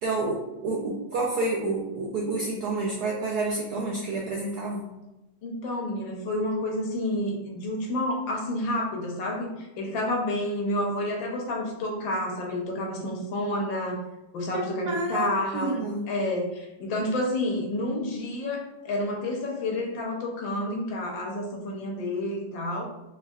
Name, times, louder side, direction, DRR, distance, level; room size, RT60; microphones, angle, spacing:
voice 1, 0.0-4.9 14.5-15.3 15.5-16.0, right 3 dB, 80° right, -3 dB, 0.9 m, -29 dB
voice 2, 5.4-14.0 14.3-22.8, left 1 dB, 75° left, -1 dB, 1.4 m, -29 dB
3.4 x 3.3 x 2.3 m, 1.0 s
omnidirectional pair, 2.2 m